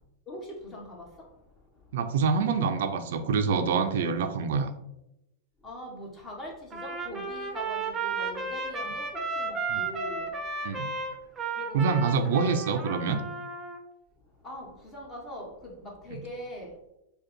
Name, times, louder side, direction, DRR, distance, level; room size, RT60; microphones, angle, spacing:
voice 1, 1.9-4.7 9.7-9.8 10.6-10.9 11.7-13.2, right 5 dB, 70° right, 7 dB, 0.5 m, -26 dB
voice 2, 5.6-6.5 6.8-9.0 9.3-10.2 11.5-11.9 12.2-12.5 14.4-15.5 15.8-16.7, equal, 25° left, -2 dB, 1.6 m, -41 dB
Trumpet, 6.7-13.8, right 4 dB, 20° right, 0.8 m, -34 dB
5.1 x 2.3 x 4.4 m, 0.87 s
hypercardioid pair, 120°, 0 cm